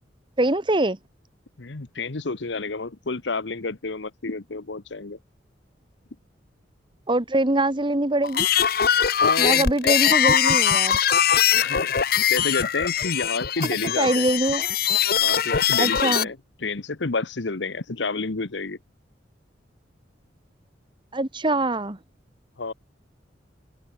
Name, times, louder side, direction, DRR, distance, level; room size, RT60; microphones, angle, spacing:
voice 1, 0.4-1.0 7.1-8.5 9.4-11.0 14.0-14.7 15.8-16.3 21.1-22.0, right 2 dB, 25° right, 1.4 m, -23 dB
voice 2, 1.6-5.2 9.2-9.9 11.5-14.3 15.2-16.4 16.6-18.8 22.6-22.7, left 3 dB, 75° left, 1.1 m, -30 dB
sound 1, 8.2-16.2, left 8 dB, 55° left, 1.0 m, -21 dB
head